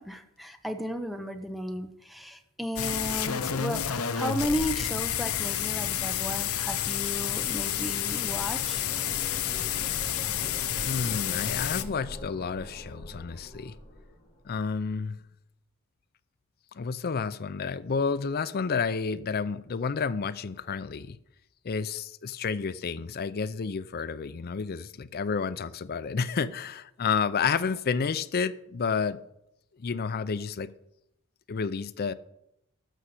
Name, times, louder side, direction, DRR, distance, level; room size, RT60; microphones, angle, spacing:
voice 1, 0.0-8.8, equal, ahead, 7 dB, 0.7 m, -34 dB
sound 1, 2.8-11.8, left 10 dB, 80° left, 0.7 m, -30 dB
Noise Floor, 5.9-14.7, equal, 25° left, 3.5 m, -44 dB
voice 2, 10.9-13.7 14.4-15.2 16.7-21.2 21.6-29.2 29.8-30.7 31.5-32.1, left 5 dB, 45° left, 14 dB, 0.5 m, -30 dB
13.0 x 5.6 x 6.5 m, 0.82 s
head